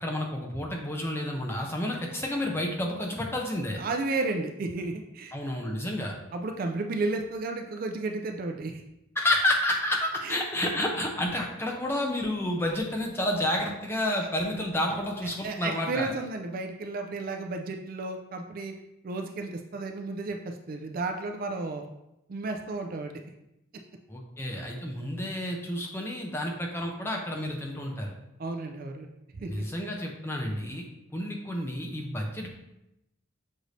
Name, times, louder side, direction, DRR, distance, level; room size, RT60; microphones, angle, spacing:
voice 1, 0.0-3.8 5.3-6.2 9.2-16.1 24.1-28.1 29.4-30.9 31.1-32.5, left 1 dB, 10° left, 0 dB, 0.5 m, -30 dB
voice 2, 3.7-5.3 6.3-8.7 10.2-10.4 15.4-18.7 19.0-21.9 22.3-23.2 28.4-29.1 29.4-29.6, right 3 dB, 45° right, 4 dB, 0.3 m, -33 dB
6.4 x 2.6 x 3.1 m, 0.87 s
head